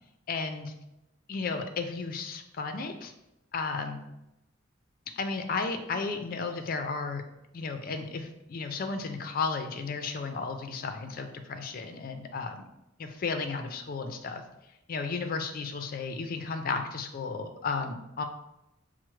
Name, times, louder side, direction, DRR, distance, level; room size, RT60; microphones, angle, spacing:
voice 1, 0.3-0.8 1.3-3.1 3.5-4.1 5.2-7.2 7.5-12.6 13.0-14.4 14.9-18.2, left 4 dB, 45° left, 7 dB, 0.4 m, -33 dB
5.6 x 2.0 x 3.1 m, 0.91 s
head